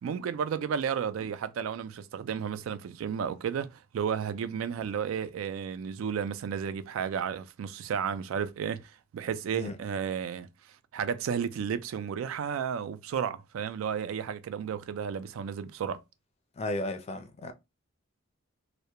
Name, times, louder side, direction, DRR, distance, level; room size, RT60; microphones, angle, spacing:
voice 1, 0.0-10.5 10.9-16.0, right 7 dB, 75° right, 0.3 m, -33 dB
voice 2, 16.6-17.5, left 1 dB, 30° left, 0.4 m, -34 dB
2.3 x 2.1 x 2.8 m
head